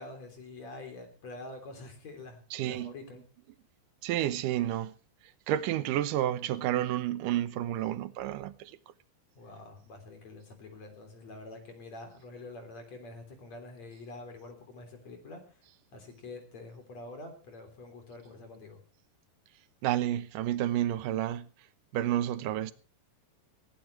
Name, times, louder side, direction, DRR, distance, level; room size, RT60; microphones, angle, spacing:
voice 1, 0.0-3.2 9.4-15.6 15.9-18.8, left 2 dB, 45° left, 4.4 m, -46 dB
voice 2, 2.5-2.9 4.0-4.9 5.5-8.7 19.8-21.5 21.9-22.7, right 12 dB, 70° right, 2.2 m, -30 dB
19.0 x 17.0 x 3.2 m
omnidirectional pair, 4.6 m